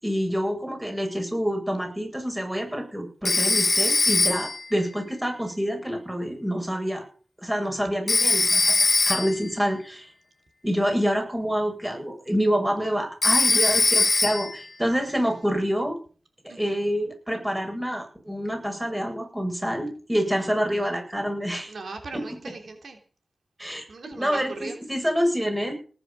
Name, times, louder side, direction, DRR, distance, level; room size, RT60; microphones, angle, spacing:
voice 1, 0.0-7.0 7.4-10.1 10.6-16.0 16.4-21.7 22.1-22.2 23.6-23.8 24.2-25.7, equal, 10° right, 4 dB, 7.8 m, -27 dB
Telephone, 3.2-4.7 8.1-9.5 13.2-14.6, left 3 dB, 45° left, 1.2 m, -21 dB
voice 2, 13.5-13.9 16.5-16.7 21.7-23.0 23.9-24.8, right 3 dB, 75° right, 4 dB, 3.3 m, -39 dB
18.5 x 10.5 x 7.2 m, 0.40 s
wide cardioid pair, 70°, 0 cm